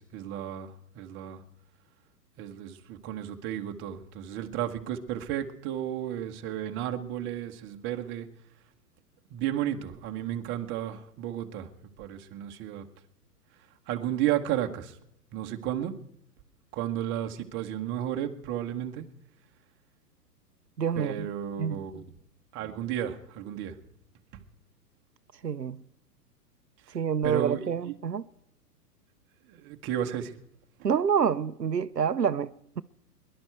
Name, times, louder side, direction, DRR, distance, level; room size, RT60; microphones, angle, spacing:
voice 1, 0.0-1.4 2.4-8.3 9.3-11.7 12.0-12.9 13.9-15.0 15.3-15.9 16.7-19.0 21.0-22.0 22.5-23.7 26.9-27.0 27.2-27.9 29.5-30.3, right 11 dB, 25° right, 1.2 m, -33 dB
voice 2, 20.8-21.3 21.6-21.9 25.4-25.8 26.9-28.2 30.8-32.8, right 7 dB, 90° right, 0.7 m, -27 dB
22.5 x 11.5 x 4.6 m
figure-of-eight pair, 110°, 48 cm